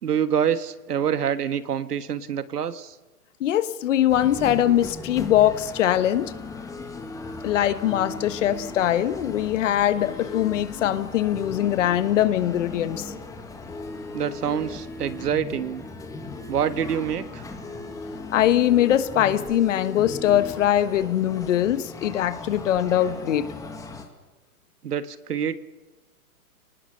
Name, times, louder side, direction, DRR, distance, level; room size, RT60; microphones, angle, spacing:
voice 1, 0.0-2.9 14.1-15.8 16.5-17.4 24.8-25.6, right 8 dB, 80° right, 13 dB, 1.5 m, -26 dB
voice 2, 3.4-6.3 7.4-13.1 18.3-23.5, left 11 dB, 50° left, 13 dB, 1.5 m, -22 dB
sound 1, 4.1-24.1, left 3 dB, 5° left, 1.7 m, -37 dB
28.0 x 19.5 x 6.7 m, 1.2 s
hypercardioid pair, 145°, 46 cm